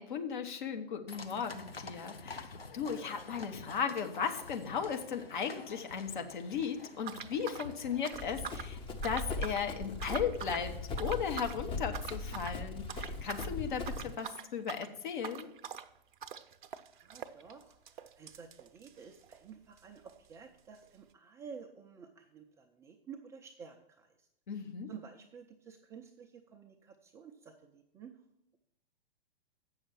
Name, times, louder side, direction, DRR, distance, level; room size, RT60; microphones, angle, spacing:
voice 1, 0.0-15.5 24.5-24.9, left 7 dB, 55° left, 5 dB, 1.3 m, -36 dB
sound 1, 1.1-8.0, left 4 dB, 85° left, 0.8 m, -49 dB
sound 2, 7.0-8.7 9.0-9.7 10.0-10.7 11.0-11.6 11.9-12.6 12.9-13.5 13.8-19.5 19.8-19.9 20.1-20.2 20.8-20.9, right 8 dB, 55° right, 0.6 m, -44 dB
Run, 8.1-14.1, left 3 dB, 15° left, 0.8 m, -39 dB
voice 2, 16.8-24.3 24.9-28.1, right 6 dB, 10° right, 3 dB, 0.4 m, -52 dB
8.0 x 6.3 x 7.3 m, 0.80 s
figure-of-eight pair, 110°, 29 cm